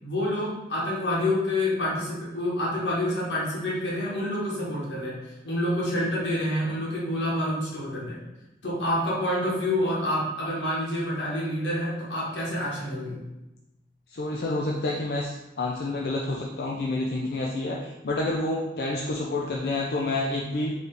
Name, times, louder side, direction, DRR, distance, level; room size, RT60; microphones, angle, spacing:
voice 1, 0.0-5.2 5.4-8.2 8.6-13.2, left 1 dB, 90° left, -5 dB, 1.4 m, -28 dB
voice 2, 14.1-20.7, left 2 dB, 60° left, -2 dB, 0.4 m, -29 dB
4.6 x 3.1 x 3.3 m, 0.99 s
head